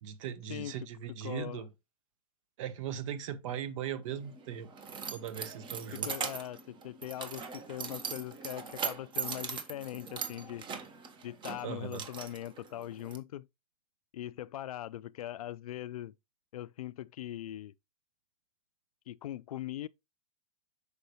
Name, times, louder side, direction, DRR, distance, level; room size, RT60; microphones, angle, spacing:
voice 1, 0.0-1.7 2.6-4.7 5.1-6.1 11.6-12.0, right 9 dB, 60° right, 1.2 m, -39 dB
voice 2, 1.2-1.7 5.9-10.6 11.2-13.5 14.1-16.1 16.5-17.7 19.1-19.9, left 13 dB, 75° left, 0.4 m, -41 dB
Keys jangling, 4.1-13.2, right 6 dB, 25° right, 1.3 m, -40 dB
6.5 x 5.0 x 3.1 m
hypercardioid pair, 110°, 19 cm